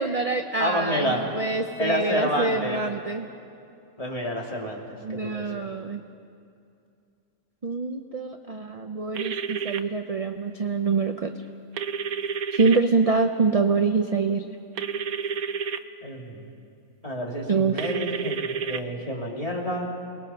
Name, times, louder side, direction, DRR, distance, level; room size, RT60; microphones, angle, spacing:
voice 1, 0.0-3.3 5.0-6.0 7.6-11.3 12.5-14.4 17.5-17.8, right 4 dB, 40° right, 6 dB, 0.5 m, -25 dB
voice 2, 0.6-1.2 1.8-2.8 4.0-5.6 16.0-16.5 17.0-19.9, equal, 25° left, -1 dB, 2.9 m, -29 dB
sound 1, 9.1-9.8 11.8-12.8 14.8-15.8 17.8-18.8, right 6 dB, 80° right, 1.2 m, -30 dB
29.0 x 20.5 x 5.7 m, 2.5 s
omnidirectional pair, 1.5 m